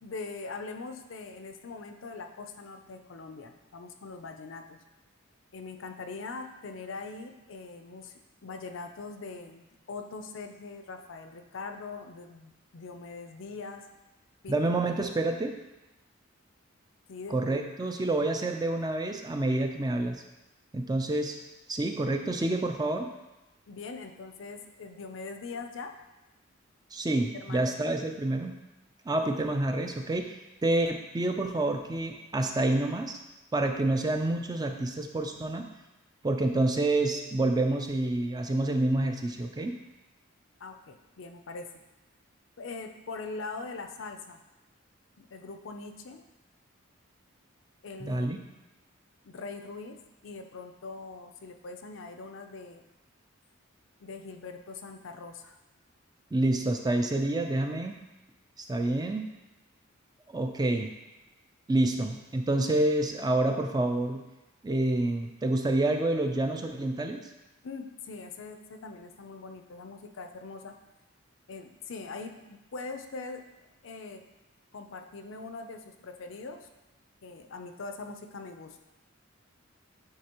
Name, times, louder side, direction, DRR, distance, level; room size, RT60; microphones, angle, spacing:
voice 1, 0.0-4.8 5.5-8.1 8.4-13.8 14.4-14.5 17.1-17.4 23.7-25.9 27.1-28.0 40.6-41.7 42.6-44.4 45.2-46.2 47.8-48.5 49.2-50.0 50.2-52.8 54.0-55.6 67.6-70.8 71.5-73.4 73.8-74.2 74.7-76.7 77.2-78.8, left 4 dB, 65° left, 6 dB, 0.5 m, -42 dB
voice 2, 14.5-15.5 17.3-20.2 20.7-21.4 21.7-23.1 26.9-28.7 29.1-33.2 33.5-35.6 36.2-39.7 48.0-48.4 56.3-58.0 58.6-59.3 60.3-60.9 61.7-64.2 64.6-67.2, right 2 dB, 20° right, 4 dB, 0.4 m, -28 dB
9.6 x 3.4 x 2.9 m, 1.0 s
head